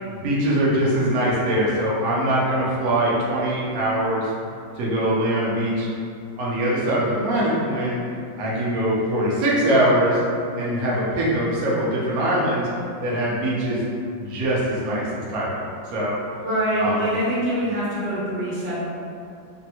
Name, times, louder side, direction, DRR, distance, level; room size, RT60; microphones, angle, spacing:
voice 1, 0.2-4.3 4.8-5.9 6.4-8.0 8.4-10.2 10.6-12.7 13.0-13.8 14.1-16.2 16.8-17.1, right 1 dB, 65° right, -6 dB, 1.0 m, -22 dB
voice 2, 16.4-18.9, equal, 80° right, -10 dB, 1.6 m, -24 dB
3.4 x 2.1 x 2.8 m, 2.4 s
omnidirectional pair, 2.1 m